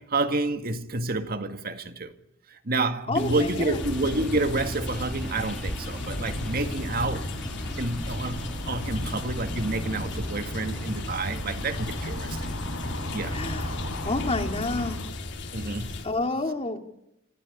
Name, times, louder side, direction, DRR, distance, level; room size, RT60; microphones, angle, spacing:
voice 1, 0.0-2.1 2.5-7.3 7.8-12.5 13.1-13.4 15.5-16.0, right 2 dB, 45° right, 1.9 m, -29 dB
sound 1, 3.1-16.1, left 2 dB, 55° left, 3.1 m, -37 dB
voice 2, 3.1-3.8 13.3-13.8 14.0-15.0 16.0-16.8, left 2 dB, 30° left, 2.7 m, -29 dB
sound 2, 3.7-14.9, equal, ahead, 3.9 m, -36 dB
sound 3, 6.0-15.1, left 1 dB, 90° left, 5.2 m, -37 dB
26.5 x 15.5 x 9.8 m
head